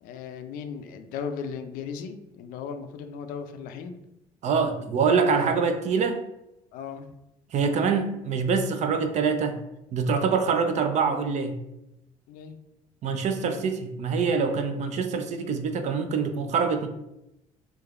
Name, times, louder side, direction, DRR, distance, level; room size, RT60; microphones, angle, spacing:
voice 1, 0.0-4.0 4.8-4.9 5.3-5.4 6.7-7.1 12.3-12.6, left 6 dB, 70° left, 8 dB, 0.4 m, -37 dB
voice 2, 4.4-6.2 7.5-9.6 9.9-11.5 13.0-16.9, right 5 dB, 50° right, 7 dB, 0.4 m, -25 dB
3.0 x 2.3 x 2.4 m, 0.88 s
supercardioid pair, 70°, 15 cm